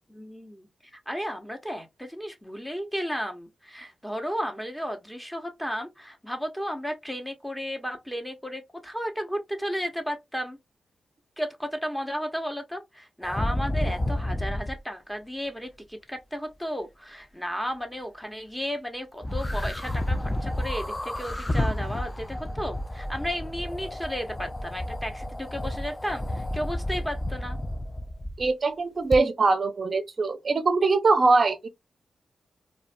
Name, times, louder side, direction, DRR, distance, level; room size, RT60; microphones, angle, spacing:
voice 1, 0.1-10.6 11.4-27.6, equal, 5° left, 0.9 m, -34 dB
sound 1, 13.2-14.8 19.2-28.5 29.1-29.2, left 1 dB, 20° left, 0.4 m, -31 dB
voice 2, 28.4-31.7, right 3 dB, 55° right, 0.4 m, -22 dB
2.4 x 2.1 x 2.5 m
supercardioid pair, 45°, 0 cm